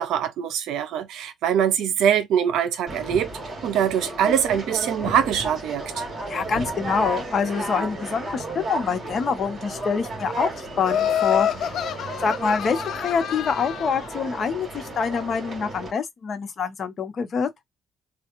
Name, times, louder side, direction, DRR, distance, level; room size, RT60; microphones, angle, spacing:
voice 1, 0.0-3.3 3.6-5.8, right 9 dB, 80° right, 0.7 m, -23 dB
Conversation, 2.9-15.9, right 2 dB, 45° right, 2.0 m, -33 dB
voice 2, 6.3-11.5 12.2-17.5, left 6 dB, 50° left, 0.9 m, -26 dB
Laughter, 10.8-14.1, left 10 dB, 65° left, 0.4 m, -27 dB
3.3 x 2.3 x 3.0 m
cardioid pair, 100°, 0 cm